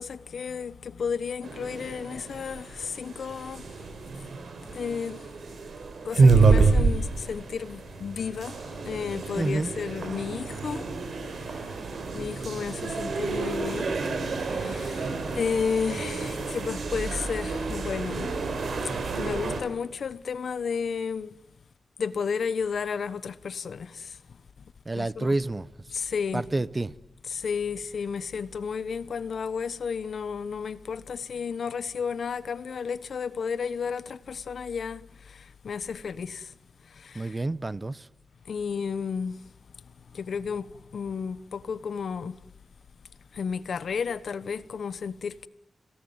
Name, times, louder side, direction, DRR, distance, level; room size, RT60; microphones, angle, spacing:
voice 1, 0.0-3.9 4.7-5.3 6.0-14.0 14.3-18.3 19.2-21.3 22.0-24.2 25.0-25.3 25.9-26.5 27.3-36.5 36.8-37.4 38.5-39.4 40.1-42.4 43.3-45.5, left 6 dB, 80° left, 1.1 m, -33 dB
sound 1, 1.4-19.6, right 4 dB, 80° right, 3.9 m, -28 dB
voice 2, 9.4-9.7 24.9-25.7 26.3-26.9 37.1-38.0, right 2 dB, 30° right, 0.9 m, -28 dB
30.0 x 18.0 x 9.5 m
wide cardioid pair, 80°, 0 cm